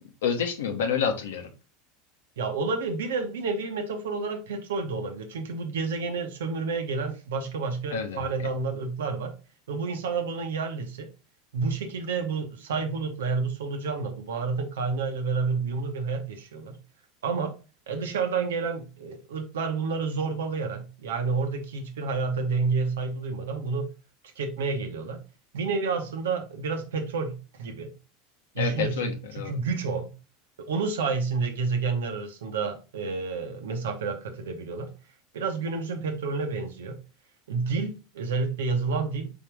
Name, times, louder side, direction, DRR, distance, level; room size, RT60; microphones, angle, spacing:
voice 1, 0.2-1.5 7.9-8.2 28.6-29.6, left 7 dB, 80° left, 0.9 m, -28 dB
voice 2, 2.4-9.3 9.7-11.1 11.5-16.8 17.2-17.6 17.9-23.9 24.4-25.2 25.5-27.9 28.5-30.1 30.6-34.9 35.3-37.0 37.5-39.3, right 4 dB, 80° right, 0.9 m, -29 dB
4.3 x 3.6 x 3.4 m
hypercardioid pair, 85°, 0 cm